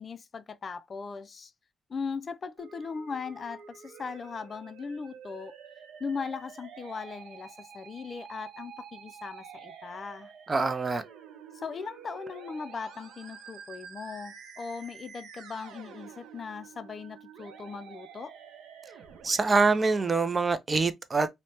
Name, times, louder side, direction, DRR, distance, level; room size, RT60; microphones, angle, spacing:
voice 1, 0.0-1.5 1.9-5.5 6.0-10.3 11.5-18.3, left 5 dB, 40° left, 0.3 m, -39 dB
Musical instrument, 2.6-20.5, right 7 dB, 80° right, 0.6 m, -49 dB
voice 2, 10.5-11.0 19.2-21.3, right 4 dB, 30° right, 0.4 m, -25 dB
3.1 x 2.1 x 2.7 m
cardioid pair, 90°, 0 cm